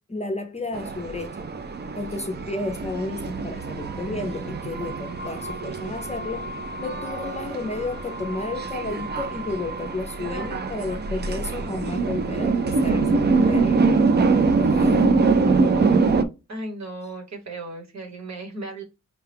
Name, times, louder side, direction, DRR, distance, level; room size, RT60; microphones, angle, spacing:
voice 1, 0.0-1.5 2.0-6.5 6.8-13.9 14.7-16.1, left 2 dB, 20° left, 0.6 m, -32 dB
sound 1, 0.7-16.2, right 4 dB, 30° right, 0.4 m, -24 dB
voice 2, 16.5-18.8, right 2 dB, 55° right, 1.3 m, -35 dB
5.5 x 2.3 x 3.4 m
wide cardioid pair, 130°, 33 cm